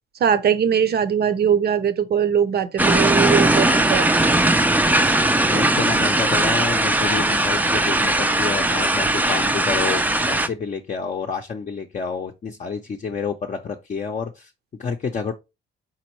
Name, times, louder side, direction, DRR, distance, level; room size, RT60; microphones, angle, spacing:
voice 1, 0.2-4.1, right 8 dB, 55° right, 0.7 m, -20 dB
sound 1, 2.8-10.5, right 1 dB, 10° right, 0.4 m, -19 dB
voice 2, 5.5-14.5 14.8-15.3, left 5 dB, 40° left, 0.6 m, -29 dB
4.2 x 4.0 x 3.0 m
cardioid pair, 90°, 20 cm